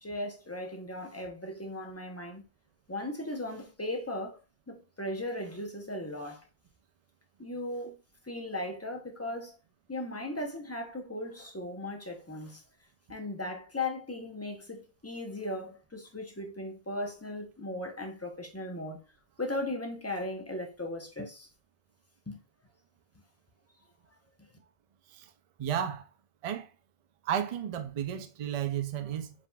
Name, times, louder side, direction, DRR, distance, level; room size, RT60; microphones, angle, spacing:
voice 1, 0.0-2.5 2.9-4.4 4.7-6.4 7.4-8.0 8.2-9.6 9.9-12.6 13.1-19.0 19.4-21.5 22.3-22.4, left 1 dB, 15° left, 0.6 m, -37 dB
voice 2, 25.6-26.1 26.4-26.7 27.3-29.3, right 9 dB, 50° right, 0.4 m, -33 dB
4.6 x 3.5 x 2.3 m
omnidirectional pair, 1.1 m